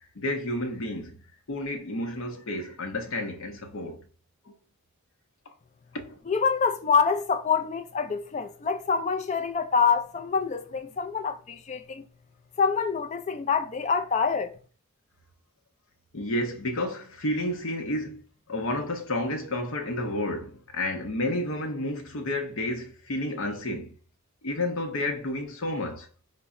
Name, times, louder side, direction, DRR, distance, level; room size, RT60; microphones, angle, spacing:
voice 1, 0.2-1.2 1.5-4.0 4.5-4.6 5.9-6.2 16.1-18.2 18.5-24.0 24.4-26.1, left 1 dB, 65° left, 0.7 m, -31 dB
voice 2, 6.3-12.0 12.6-14.5, left 5 dB, 35° left, 0.3 m, -26 dB
4.2 x 2.0 x 3.6 m
head